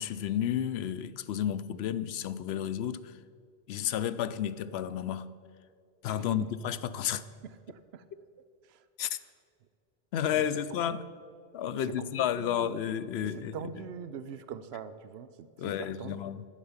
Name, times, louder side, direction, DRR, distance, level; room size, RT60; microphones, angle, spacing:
voice 1, 0.0-3.2 3.7-5.3 6.0-7.2 9.0-9.2 10.1-11.1 11.5-13.9 15.6-16.5, left 10 dB, 85° left, 0.8 m, -32 dB
voice 2, 6.1-6.5 7.4-8.0 8.7-8.8 10.2-10.5 11.8-12.8 13.2-16.2, right 7 dB, 80° right, 0.9 m, -43 dB
11.5 x 10.0 x 7.1 m
omnidirectional pair, 1.0 m